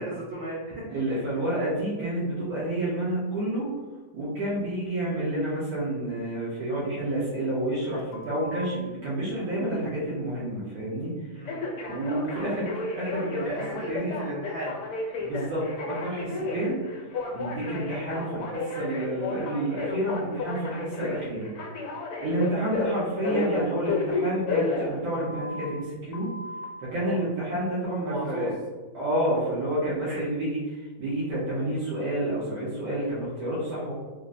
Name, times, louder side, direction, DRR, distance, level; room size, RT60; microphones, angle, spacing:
voice 1, 0.0-1.2 4.4-4.6 11.3-11.8 12.4-12.6 13.3-14.8 17.1-17.2 22.2-22.3 26.9-27.2 28.0-28.6 29.4-29.5 30.0-30.2, right 1 dB, 55° right, -5 dB, 0.7 m, -36 dB
voice 2, 0.9-3.7 4.1-11.1 11.8-13.5 13.9-14.1 15.2-16.8 17.3-21.5 22.2-26.3 26.8-28.5 28.9-33.9, right 1 dB, 80° right, -10 dB, 1.4 m, -29 dB
Telephone, 8.1-8.7 11.5-25.6 26.1-26.6, left 3 dB, 70° left, 1.0 m, -32 dB
3.6 x 2.1 x 2.5 m, 1.3 s
omnidirectional pair, 1.6 m